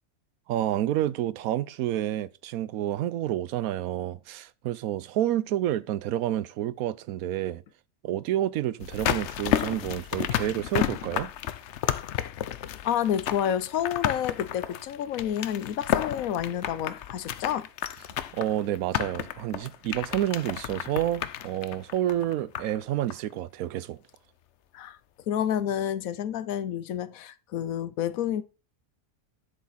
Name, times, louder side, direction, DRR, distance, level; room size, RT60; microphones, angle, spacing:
voice 1, 0.5-7.6 8.0-11.3 18.3-24.0, right 12 dB, 80° right, 1.1 m, -29 dB
sound 1, 8.8-22.8 23.1-23.2, left 11 dB, 65° left, 0.8 m, -32 dB
voice 2, 12.8-17.7 24.7-25.0 25.3-28.4, left 10 dB, 80° left, 1.1 m, -29 dB
7.5 x 7.2 x 5.6 m
omnidirectional pair, 1.5 m